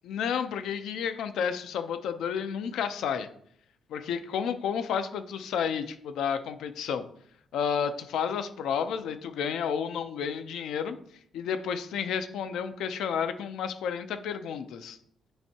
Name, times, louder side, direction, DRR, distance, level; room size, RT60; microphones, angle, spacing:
voice 1, 0.0-3.3 3.9-7.0 7.5-11.0 11.3-15.0, left 7 dB, 85° left, 9 dB, 0.6 m, -31 dB
10.0 x 3.5 x 2.8 m, 0.64 s
cardioid pair, 110°, 0 cm